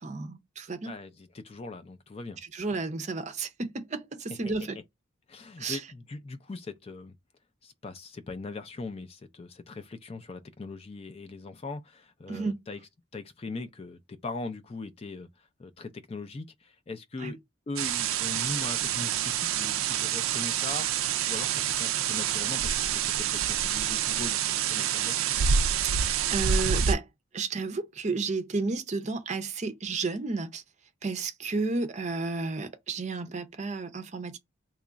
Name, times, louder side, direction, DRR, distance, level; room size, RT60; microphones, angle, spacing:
voice 1, 0.0-0.9 2.5-4.8 5.6-5.8 12.3-12.6 17.2-17.3 25.8-27.1 27.3-30.6 31.0-34.4, right 3 dB, 35° right, 0.5 m, -32 dB
voice 2, 0.8-2.4 4.4-4.5 5.3-7.2 7.6-12.8 13.1-17.4 17.7-25.2, left 3 dB, 30° left, 0.3 m, -40 dB
sound 1, 17.8-26.9, right 8 dB, 85° right, 0.4 m, -27 dB
3.0 x 2.3 x 3.8 m
head